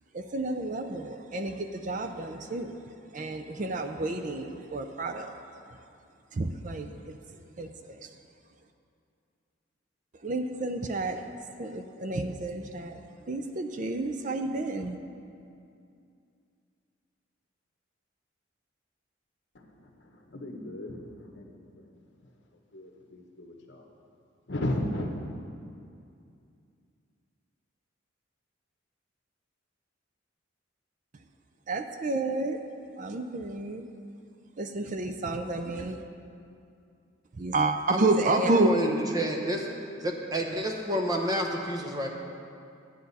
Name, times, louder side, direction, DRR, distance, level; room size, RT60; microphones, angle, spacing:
voice 1, 0.1-2.8 3.1-5.3 6.3-7.2 7.6-8.1 10.2-11.3 11.6-13.0 13.3-15.0 31.7-32.6 33.0-33.8 34.6-36.0 37.4-38.7, right 2 dB, 40° right, 6 dB, 0.4 m, -30 dB
voice 2, 20.3-21.0 21.3-21.4 22.7-23.8 24.5-25.1, left 1 dB, 60° left, 2 dB, 1.1 m, -33 dB
voice 3, 37.9-39.7 40.0-42.1, equal, 20° right, 2 dB, 0.8 m, -29 dB
11.5 x 9.2 x 4.1 m, 2.5 s
head